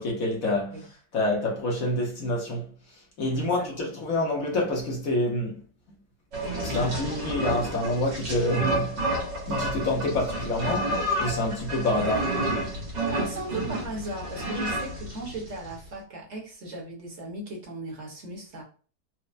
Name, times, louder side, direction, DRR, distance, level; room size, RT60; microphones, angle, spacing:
voice 1, 0.0-5.6 6.6-9.0 9.5-12.3, left 1 dB, 60° left, 1.1 m, -27 dB
voice 2, 3.3-3.9 13.1-18.6, right 2 dB, 45° right, 1.2 m, -37 dB
sound 1, 6.3-15.8, right 1 dB, 80° right, 1.8 m, -30 dB
4.3 x 2.1 x 2.5 m
omnidirectional pair, 1.9 m